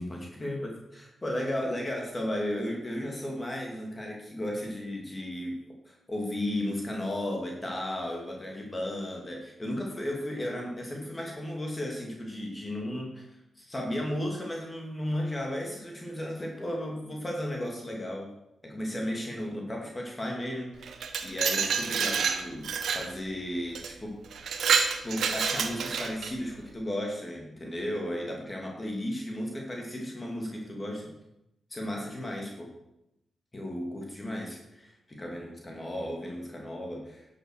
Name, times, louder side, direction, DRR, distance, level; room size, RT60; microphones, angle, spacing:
voice 1, 0.0-5.6 5.9-18.3 18.6-24.1 25.0-31.1 31.7-32.7 33.5-37.3, left 1 dB, 25° left, -1 dB, 2.4 m, -34 dB
Glass, 20.8-23.1 23.7-23.9 24.3-26.3, right 6 dB, 85° right, 1.1 m, -28 dB
11.0 x 7.0 x 6.3 m, 0.87 s
cardioid pair, 85°, 0 cm